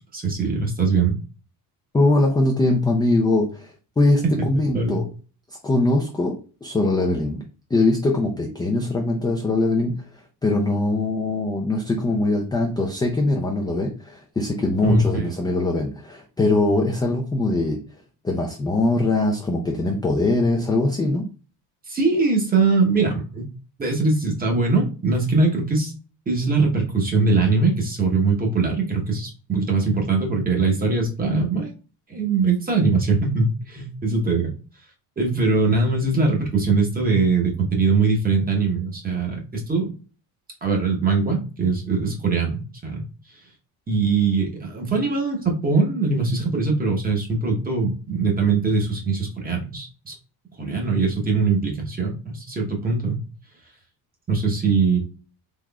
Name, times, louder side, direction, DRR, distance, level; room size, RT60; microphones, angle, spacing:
voice 1, 0.1-1.2 4.4-4.5 4.7-5.0 14.8-15.3 21.9-23.5 23.8-25.9 26.3-31.7 32.1-34.5 35.2-39.9 40.6-43.0 43.9-50.1 50.6-53.2 54.3-55.0, right 4 dB, 20° right, 1 dB, 0.9 m, -21 dB
voice 2, 1.9-5.1 5.6-6.3 6.6-7.4 7.7-9.9 10.4-17.8 18.2-21.3, left 2 dB, 10° left, 0 dB, 0.4 m, -22 dB
3.7 x 3.0 x 2.3 m, 0.36 s
cardioid pair, 130°, 42 cm